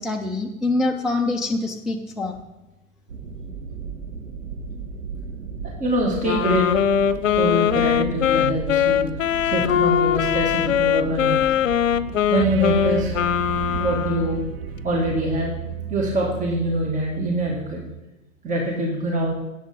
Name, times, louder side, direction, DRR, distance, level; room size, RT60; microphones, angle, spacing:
voice 1, 0.0-2.4, left 2 dB, ahead, 2 dB, 0.3 m, -25 dB
sound 1, 3.1-16.1, right 5 dB, 80° right, 2.0 m, -35 dB
voice 2, 5.8-6.7 7.4-9.0 9.4-11.5 12.3-13.1 13.7-14.4 14.8-15.5 15.9-17.8 18.4-19.3, right 1 dB, 20° right, -1 dB, 2.1 m, -24 dB
Wind instrument woodwind instrument, 6.2-14.5, left 9 dB, 70° left, 0.7 m, -21 dB
Fluttering Melody, 12.4-18.0, right 11 dB, 45° right, 1.0 m, -34 dB
17.5 x 7.7 x 3.6 m, 0.98 s
figure-of-eight pair, 100°, 39 cm